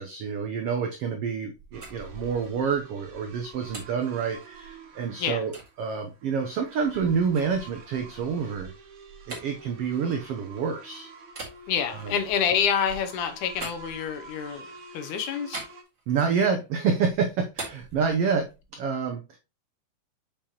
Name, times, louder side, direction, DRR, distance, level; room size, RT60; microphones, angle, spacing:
voice 1, 0.0-5.5 5.8-8.7 9.3-11.1 11.9-12.1 16.1-19.4, right 6 dB, 90° right, 1.3 m, -28 dB
sound 1, 1.5-4.9 5.5-5.7 6.3-10.7 11.3-14.5 15.5-16.6 16.9-18.7, right 3 dB, 30° right, 1.6 m, -44 dB
sound 2, 1.7-15.8, right 4 dB, 55° right, 1.4 m, -48 dB
voice 2, 11.7-14.6 14.9-15.6, left 8 dB, 80° left, 2.1 m, -27 dB
7.2 x 5.0 x 2.9 m
omnidirectional pair, 3.6 m